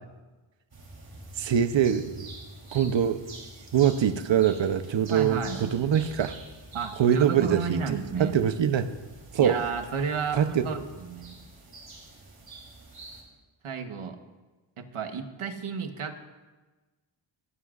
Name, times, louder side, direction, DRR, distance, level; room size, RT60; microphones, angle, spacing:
sound 1, 0.7-13.2, right 2 dB, 45° right, 3.5 m, -47 dB
voice 1, 1.4-2.3 2.7-3.2 3.7-6.4 7.0-8.9 9.3-9.6 10.4-10.6, right 8 dB, 65° right, 10 dB, 0.9 m, -24 dB
voice 2, 5.1-5.6 6.7-8.4 9.4-11.4 13.6-14.2 14.8-16.3, right 5 dB, 90° right, 6 dB, 1.3 m, -32 dB
21.5 x 14.5 x 2.5 m, 1.2 s
wide cardioid pair, 105°, 49 cm